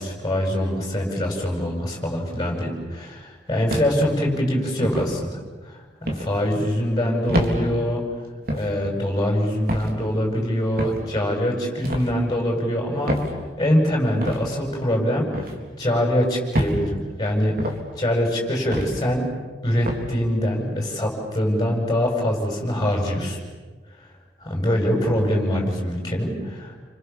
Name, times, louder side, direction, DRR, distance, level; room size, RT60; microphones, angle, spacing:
voice 1, 0.0-5.4 5.6-8.0 8.5-13.2 13.6-15.3 15.8-17.7 18.0-19.3 19.6-23.4 24.4-26.7, equal, 20° left, 0 dB, 7.4 m, -23 dB
sound 1, 3.7-4.1 4.8-5.1 6.1-6.3 7.3-7.6 8.5-8.7 9.7-9.9 10.8-11.0 11.8-12.1 13.1-13.3 14.2-14.4 15.3-15.6 16.5-16.8 17.6-17.8 18.7-19.0 19.9-20.1, equal, 55° right, 3.8 m, -26 dB
29.5 x 27.0 x 7.2 m, 1.3 s
head